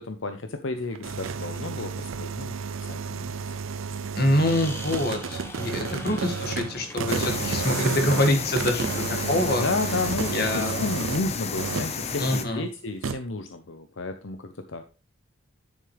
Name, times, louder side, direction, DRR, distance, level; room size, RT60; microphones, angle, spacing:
voice 1, 0.0-3.4 5.8-6.3 7.6-8.0 9.6-14.8, left 3 dB, 75° left, 8 dB, 0.8 m, -32 dB
sound 1, 0.8-11.3 11.6-12.0 13.0-13.2, right 5 dB, 85° right, 0.6 m, -31 dB
voice 2, 4.1-9.6 10.3-10.8 12.2-12.6, left 1 dB, 50° left, 4 dB, 2.1 m, -25 dB
sound 2, 4.4-11.1, left 2 dB, 10° left, 1.2 m, -43 dB
sound 3, 7.1-12.4, left 5 dB, 30° left, 0.8 m, -32 dB
9.9 x 7.3 x 3.4 m, 0.32 s
head